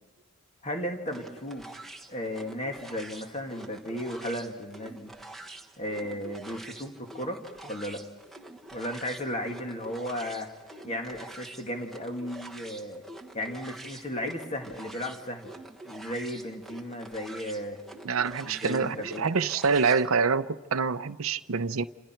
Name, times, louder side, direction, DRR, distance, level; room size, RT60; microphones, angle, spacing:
voice 1, 0.6-1.7 2.1-5.1 5.8-7.4 7.6-8.0 8.7-10.5 10.8-13.0 13.3-15.5 15.8-17.8 18.4-19.3, equal, 30° left, 2.2 m, -35 dB
sound 1, 1.1-20.1, right 2 dB, ahead, 1.2 m, -46 dB
voice 2, 18.0-21.8, right 5 dB, 65° right, 0.7 m, -26 dB
29.0 x 27.0 x 4.5 m
head